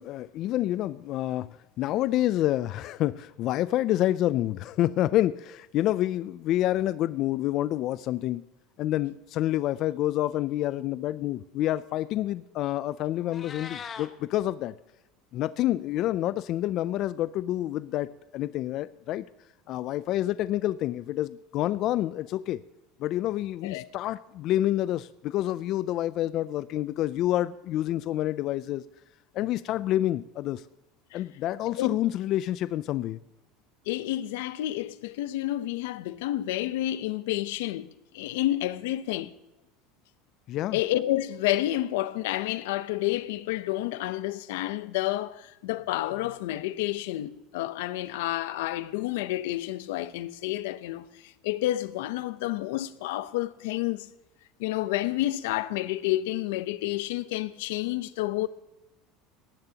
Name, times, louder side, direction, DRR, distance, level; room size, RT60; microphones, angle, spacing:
voice 1, 0.0-8.4 8.8-14.7 15.3-19.2 19.7-22.6 23.0-28.8 29.3-30.6 31.1-33.2 40.5-40.8, left 14 dB, 45° left, 0.3 m, -28 dB
Meow, 13.1-14.1, left 7 dB, 25° left, 0.9 m, -40 dB
voice 2, 33.9-37.9 38.1-39.3 40.7-54.1 54.6-58.5, left 15 dB, 85° left, 0.7 m, -30 dB
18.5 x 10.5 x 2.8 m
cardioid pair, 150°, 0 cm